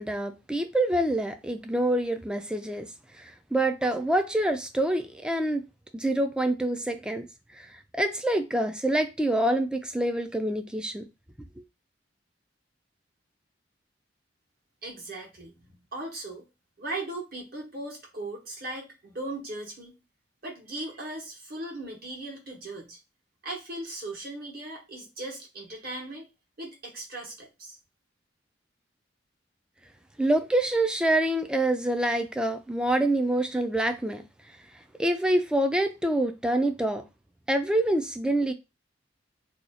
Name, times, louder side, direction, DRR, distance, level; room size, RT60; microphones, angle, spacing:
voice 1, 0.0-2.9 3.2-5.6 5.9-7.3 7.5-11.0 30.2-34.2 35.0-37.0 37.5-38.5, right 1 dB, 5° right, 0.3 m, -26 dB
voice 2, 14.8-16.4 16.8-19.9 20.4-23.0 23.4-26.2 26.6-27.8, right 2 dB, 55° right, 1.2 m, -38 dB
2.8 x 2.3 x 4.2 m
head